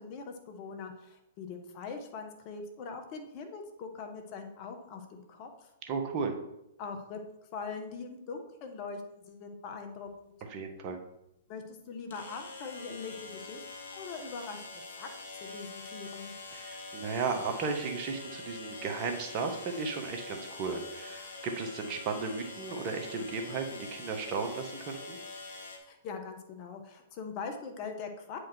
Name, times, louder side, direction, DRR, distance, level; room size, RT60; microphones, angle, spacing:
voice 1, 0.0-5.7 6.8-10.3 11.5-13.6 13.9-15.1 15.4-16.3 25.8-28.4, left 5 dB, 40° left, 5 dB, 1.4 m, -42 dB
voice 2, 5.8-6.3 10.5-11.0 16.5-25.2, right 4 dB, 40° right, 4 dB, 1.5 m, -35 dB
sound 1, 10.1-10.2 12.1-25.8, left 3 dB, 65° left, 2.1 m, -45 dB
9.2 x 5.0 x 4.6 m, 0.84 s
hypercardioid pair, 115°, 0 cm